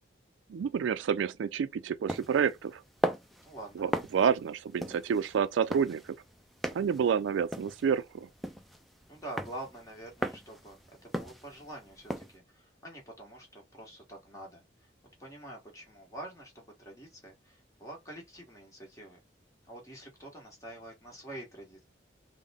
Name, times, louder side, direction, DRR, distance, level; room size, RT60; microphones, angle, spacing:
voice 1, 0.5-2.8 3.8-6.0 6.7-8.3, right 7 dB, 90° right, 0.3 m, -29 dB
sound 1, 2.1-12.4, equal, ahead, 0.3 m, -38 dB
voice 2, 3.4-3.9 9.1-14.9 15.2-19.2 19.7-21.8, right 1 dB, 15° left, 1.3 m, -46 dB
3.5 x 2.1 x 3.5 m
head